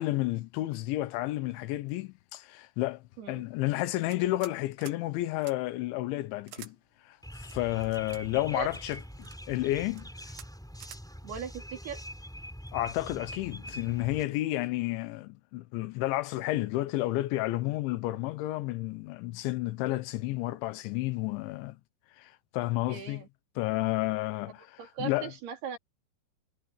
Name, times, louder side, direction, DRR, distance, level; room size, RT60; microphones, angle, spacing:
voice 1, 0.0-6.8 7.1-9.0 9.5-10.4 12.7-21.8 22.2-23.2 23.6-24.7 25.0-25.3, left 17 dB, 85° left, 3.4 m, -31 dB
sound 1, 4.0-4.6 4.8-5.0 5.4-5.6 6.5-6.7 7.5-8.2 8.9-9.4 9.9-10.0 10.3-10.5 10.8-11.0, right 13 dB, 80° right, 3.6 m, -48 dB
sound 2, 7.2-14.2, equal, ahead, 6.6 m, -44 dB
voice 2, 8.4-8.8 11.2-12.0 22.9-23.3 24.8-25.8, right 7 dB, 60° right, 4.9 m, -39 dB
omnidirectional pair, 5.2 m